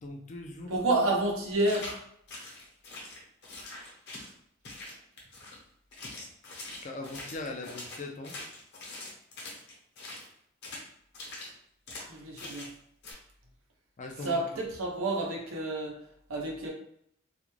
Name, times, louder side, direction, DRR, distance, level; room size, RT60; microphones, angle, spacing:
voice 1, 0.0-0.8 6.8-8.4 14.0-14.3, left 2 dB, 35° left, 2 dB, 0.4 m, -40 dB
voice 2, 0.7-1.9 12.1-12.7 14.2-16.0 16.3-16.7, right 2 dB, 85° right, -1 dB, 0.8 m, -29 dB
sound 1, 1.6-2.0 2.3-4.3 4.6-5.6 5.9-10.3 10.6-10.9 11.1-11.5 11.9-12.1 12.4-12.7 13.0-13.1, left 2 dB, 55° left, 0.8 m, -43 dB
2.4 x 2.2 x 3.1 m, 0.69 s
head